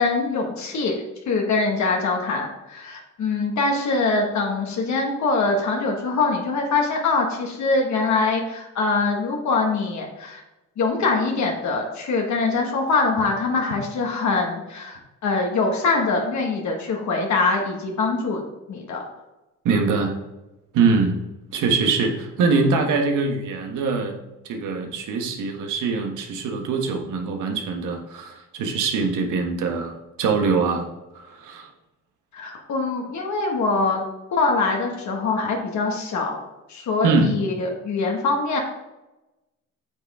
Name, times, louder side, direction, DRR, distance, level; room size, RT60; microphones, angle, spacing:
voice 1, 0.0-10.4 10.8-18.4 18.7-19.0 32.3-34.0 34.3-36.4 36.7-38.6, left 3 dB, 70° left, 0 dB, 1.7 m, -23 dB
voice 2, 19.6-20.1 20.7-21.2 21.5-24.2 24.4-30.9 31.1-31.7 37.0-37.4, right 4 dB, 85° right, 3 dB, 1.5 m, -23 dB
9.1 x 6.3 x 3.6 m, 1.0 s
cardioid pair, 90°, 30 cm